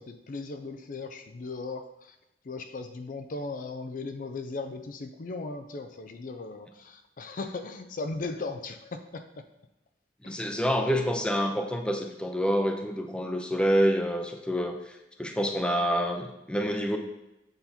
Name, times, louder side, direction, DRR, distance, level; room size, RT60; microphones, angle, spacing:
voice 1, 0.0-2.2 2.4-9.4 10.2-11.0, left 3 dB, 50° left, 7 dB, 0.5 m, -38 dB
voice 2, 10.2-17.0, equal, 5° left, 4 dB, 0.6 m, -27 dB
7.9 x 4.1 x 4.3 m, 0.92 s
head